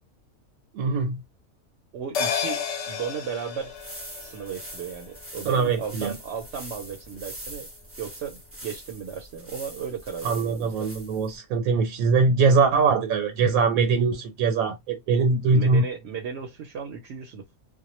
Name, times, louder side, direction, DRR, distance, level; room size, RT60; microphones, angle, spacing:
voice 1, 0.7-1.2 5.5-6.1 10.2-15.8, right 4 dB, 85° right, 1.0 m, -22 dB
voice 2, 1.9-3.7 4.2-7.7 8.0-10.8 14.7-14.8 15.5-17.4, right 7 dB, 65° right, 0.7 m, -35 dB
sound 1, 2.1-6.9 7.2-7.3, left 7 dB, 65° left, 0.8 m, -33 dB
sound 2, 3.6-11.4, right 1 dB, 20° right, 0.3 m, -43 dB
2.2 x 2.1 x 2.9 m
omnidirectional pair, 1.5 m